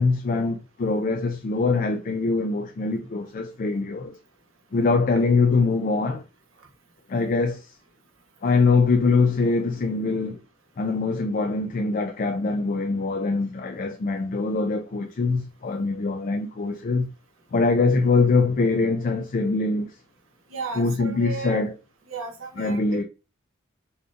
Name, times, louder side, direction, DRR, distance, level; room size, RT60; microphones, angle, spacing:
voice 1, 0.0-4.2 4.7-6.2 7.1-7.7 8.4-10.4 10.8-17.1 17.5-19.9 20.8-21.7 22.6-23.0, left 3 dB, 40° left, 0.4 m, -23 dB
voice 2, 20.5-21.6 22.1-23.0, right 5 dB, 65° right, 0.8 m, -34 dB
4.2 x 2.5 x 2.4 m
head